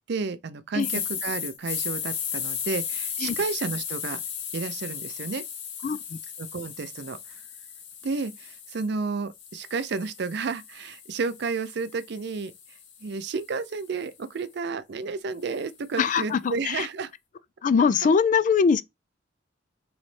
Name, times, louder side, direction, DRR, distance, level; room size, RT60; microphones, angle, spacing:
voice 1, 0.1-4.2 4.5-5.4 6.4-7.2 8.0-12.5 13.0-17.1 18.0-18.1, right 4 dB, 60° right, 0.4 m, -31 dB
sound 1, 0.8-8.9 9.4-13.6, left 8 dB, 90° left, 0.9 m, -35 dB
voice 2, 16.0-16.8 17.6-18.8, left 6 dB, 40° left, 0.3 m, -22 dB
4.0 x 3.1 x 3.1 m
head